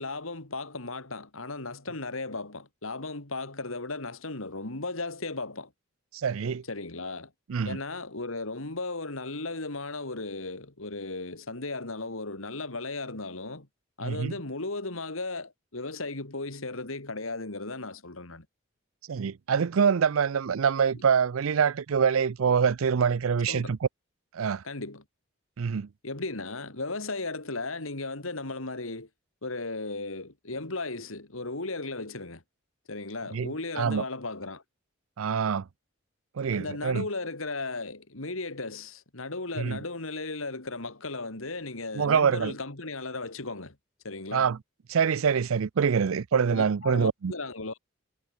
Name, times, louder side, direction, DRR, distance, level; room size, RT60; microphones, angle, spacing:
voice 1, 0.0-5.7 6.7-7.3 7.6-13.7 14.0-18.5 23.5-23.8 24.6-25.0 26.0-29.1 29.4-32.4 32.9-34.6 36.5-43.8 44.0-44.5 46.5-47.8, left 3 dB, 75° left, 3.0 m, -36 dB
voice 2, 6.1-6.6 7.5-7.8 14.0-14.3 19.1-23.9 24.3-24.6 25.6-25.9 33.3-34.0 35.2-35.7 36.4-37.1 39.6-39.8 41.9-42.5 44.3-44.6 44.9-47.3, right 6 dB, 75° right, 0.5 m, -25 dB
head